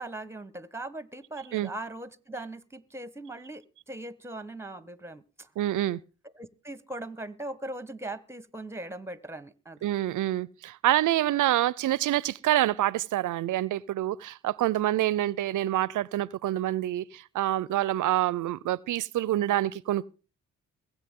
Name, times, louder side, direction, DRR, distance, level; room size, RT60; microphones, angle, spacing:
voice 1, 0.0-5.5 6.4-9.8, right 2 dB, 10° right, 1.1 m, -40 dB
voice 2, 5.6-6.0 9.8-20.1, right 14 dB, 70° right, 0.6 m, -27 dB
22.0 x 8.2 x 3.7 m
supercardioid pair, 45°, 32 cm